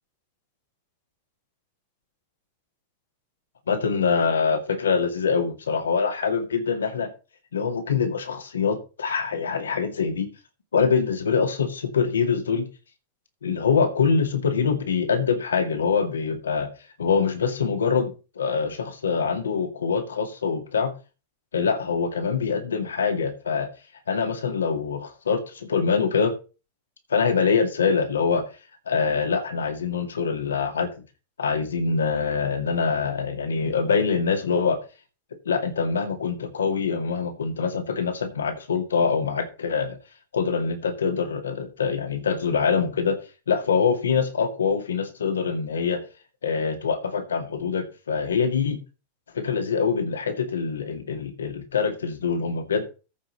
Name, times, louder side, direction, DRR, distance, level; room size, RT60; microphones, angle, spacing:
voice 1, 3.7-7.1 7.5-10.3 10.7-12.7 13.4-16.7 17.0-20.9 21.5-23.7 24.1-26.3 27.1-28.4 28.9-30.9 31.4-34.8 35.5-40.0 40.3-43.2 43.5-46.0 46.4-48.8 49.3-52.9, left 5 dB, 70° left, 6 dB, 2.2 m, -24 dB
14.0 x 6.0 x 4.1 m, 0.32 s
figure-of-eight pair, 90°, 0 cm